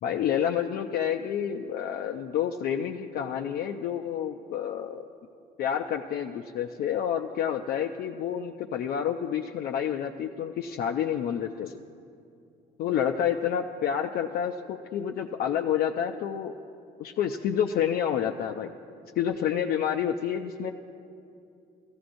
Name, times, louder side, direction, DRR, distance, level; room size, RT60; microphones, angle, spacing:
voice 1, 0.0-5.0 5.6-11.8 12.8-16.5 17.0-18.7 19.2-20.7, left 9 dB, 65° left, 3 dB, 0.5 m, -29 dB
17.0 x 15.0 x 2.6 m, 2.5 s
cardioid pair, 110°, 17 cm